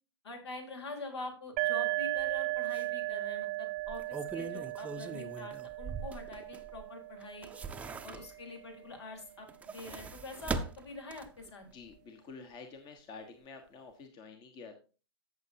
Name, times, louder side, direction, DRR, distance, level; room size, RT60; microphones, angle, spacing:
voice 1, 0.2-7.5 8.0-9.5 9.7-11.6, left 2 dB, 75° left, 3 dB, 4.0 m, -45 dB
sound 1, 1.6-9.1, right 19 dB, 40° right, 0.5 m, -37 dB
sound 2, 2.2-2.3 2.7-2.8 3.8-6.8 7.2-8.6 9.4-11.5 11.9-12.0, right 4 dB, 10° right, 0.8 m, -41 dB
voice 2, 11.7-14.8, left 4 dB, 30° left, 6 dB, 1.4 m, -49 dB
14.5 x 6.9 x 2.8 m, 0.34 s
hypercardioid pair, 120°, 14 cm